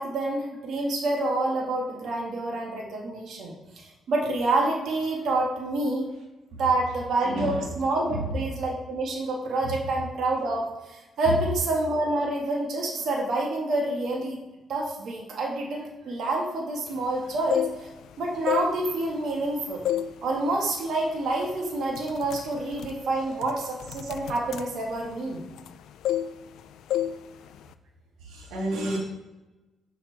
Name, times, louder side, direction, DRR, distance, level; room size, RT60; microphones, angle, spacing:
voice 1, 0.0-3.5 4.1-6.1 6.6-14.4 14.7-17.9 18.2-19.8 20.2-25.5, right 2 dB, 65° right, -1 dB, 1.6 m, -27 dB
voice 2, 7.2-7.6 8.1-8.3 28.3-29.0, right 1 dB, 90° right, -1 dB, 1.6 m, -30 dB
sound 1, 17.3-18.1 18.4-19.5 19.9-20.2 20.6-20.8 21.4-21.6 21.9-25.8 26.0-26.6 26.9-27.2 27.5-27.7, left 11 dB, 80° left, 0.3 m, -30 dB
6.1 x 5.7 x 4.6 m, 1.1 s
cardioid pair, 90°, 0 cm